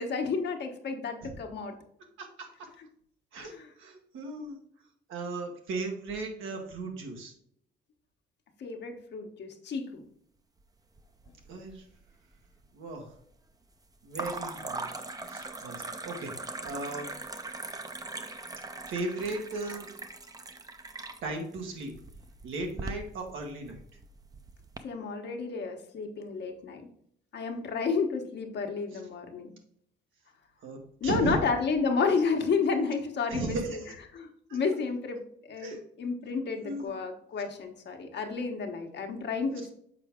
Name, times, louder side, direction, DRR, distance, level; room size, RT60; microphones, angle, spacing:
voice 1, 0.0-1.7 3.4-3.7 8.6-10.0 24.8-26.9 27.3-29.5 31.0-33.8 34.1-35.2 35.5-39.7, left 5 dB, 60° left, 4 dB, 1.2 m, -31 dB
voice 2, 2.2-2.7 3.3-3.5 3.8-4.6 5.1-7.3 11.5-11.8 12.7-13.1 14.0-14.9 15.3-17.1 18.9-19.9 21.2-21.9 22.4-23.8 28.9-29.0 30.6-30.8 31.0-31.4 33.3-34.0 34.5-34.6 35.6-35.8 36.6-36.9, right 2 dB, 85° right, 2 dB, 1.5 m, -36 dB
sound 1, 11.0-11.7 12.0-12.6 14.1-24.8, right 2 dB, 20° right, 0.6 m, -41 dB
6.6 x 4.6 x 3.7 m, 0.68 s
cardioid pair, 90°, 20 cm